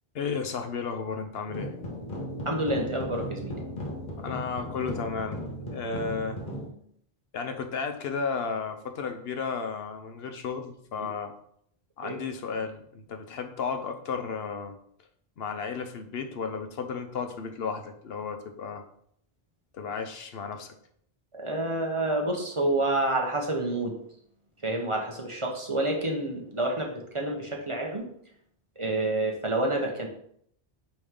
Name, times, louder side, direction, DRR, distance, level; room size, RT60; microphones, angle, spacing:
voice 1, 0.1-1.7 4.2-5.4 5.7-6.4 7.3-11.3 12.0-14.8 15.4-18.8 19.7-20.7, left 5 dB, 70° left, 6 dB, 0.8 m, -33 dB
sound 1, 1.5-6.7, equal, 50° left, 1.3 m, -36 dB
voice 2, 2.4-3.5 11.0-11.1 12.0-12.2 21.3-23.9 24.6-28.0 28.8-30.1, right 2 dB, 30° right, 0 dB, 0.9 m, -28 dB
8.4 x 3.1 x 3.6 m, 0.68 s
omnidirectional pair, 1.1 m